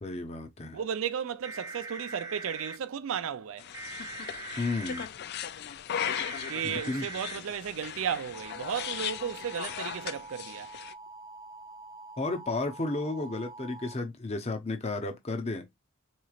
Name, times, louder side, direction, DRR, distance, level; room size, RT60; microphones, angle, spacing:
voice 1, 0.0-0.8 4.6-5.1 6.6-7.1 12.2-15.6, left 2 dB, 30° left, 0.7 m, -33 dB
voice 2, 0.7-3.6 6.5-10.7, right 8 dB, 65° right, 0.4 m, -34 dB
sound 1, 1.4-2.8 3.7-5.1 6.0-7.4 8.3-13.9, right 3 dB, 15° right, 0.7 m, -44 dB
sound 2, 3.6-10.9, left 9 dB, 45° left, 0.3 m, -38 dB
3.9 x 3.1 x 2.4 m
head